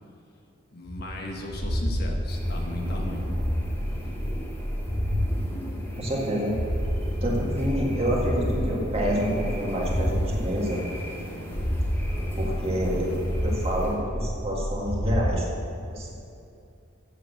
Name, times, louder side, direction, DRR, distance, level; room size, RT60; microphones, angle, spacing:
voice 1, 0.7-3.2 3.8-4.3, left 1 dB, 50° left, 0 dB, 1.4 m, -37 dB
sound 1, 0.8-5.3 5.7-10.3 10.7-11.2 11.5-15.3, equal, 35° left, 2.1 m, -29 dB
sound 2, 2.3-13.9, equal, 10° left, 2.3 m, -39 dB
voice 2, 6.0-6.5 7.2-10.8 12.3-13.1 13.4-15.5 15.9-16.1, equal, 30° right, -3 dB, 1.9 m, -28 dB
8.2 x 7.7 x 8.0 m, 2.6 s
head